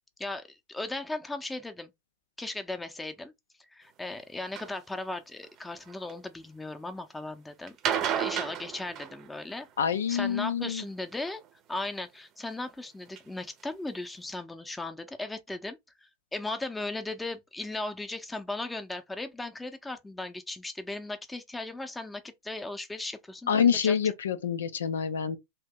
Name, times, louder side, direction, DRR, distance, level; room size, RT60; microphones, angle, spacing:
voice 1, 0.2-1.9 2.4-3.3 3.6-7.8 8.1-9.7 10.1-11.4 11.7-24.0, left 2 dB, 10° left, 0.6 m, -37 dB
sound 1, 4.6-4.7 5.4-6.1 7.7-9.7 11.2-11.8 12.5-12.6 13.2-13.3 13.6-13.7 13.9-14.0, right 9 dB, 40° right, 0.7 m, -32 dB
voice 2, 9.8-10.8 23.5-25.4, left 7 dB, 85° left, 0.5 m, -26 dB
2.8 x 2.7 x 3.5 m
hypercardioid pair, 105°, 0 cm